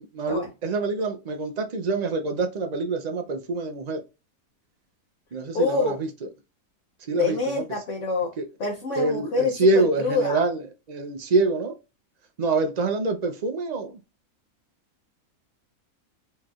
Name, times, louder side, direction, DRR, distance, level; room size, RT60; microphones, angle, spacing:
voice 1, 0.2-4.0 5.3-5.9 7.1-7.6 8.4-8.5 9.0-10.6 10.9-11.7 12.4-14.0, right 3 dB, 70° right, 0.4 m, -25 dB
voice 2, 5.5-6.0 7.1-8.3 8.6-10.4, left 3 dB, 55° left, 1.1 m, -26 dB
4.7 x 2.9 x 2.4 m
omnidirectional pair, 1.7 m